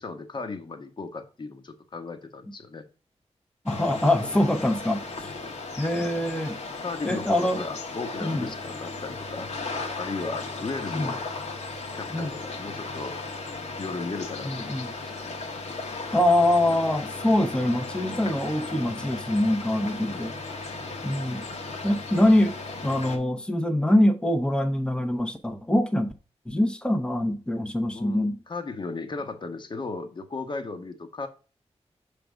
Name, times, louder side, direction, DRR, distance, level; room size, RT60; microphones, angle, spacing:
voice 1, 0.0-2.8 5.2-5.5 6.8-9.5 10.0-11.2 12.0-13.2 13.8-14.7 15.2-15.3 20.0-20.4 27.9-31.3, left 3 dB, 45° left, 1.1 m, -36 dB
voice 2, 3.6-5.4 5.8-6.6 7.0-7.6 8.2-8.5 10.9-11.1 12.1-12.3 14.4-14.9 16.1-20.3 21.0-21.4 21.8-22.5 22.8-26.1 26.5-28.4, left 1 dB, 10° left, 0.8 m, -24 dB
sound 1, 3.7-23.2, left 3 dB, 85° left, 1.5 m, -36 dB
6.7 x 3.5 x 5.1 m
wide cardioid pair, 125°, 11 cm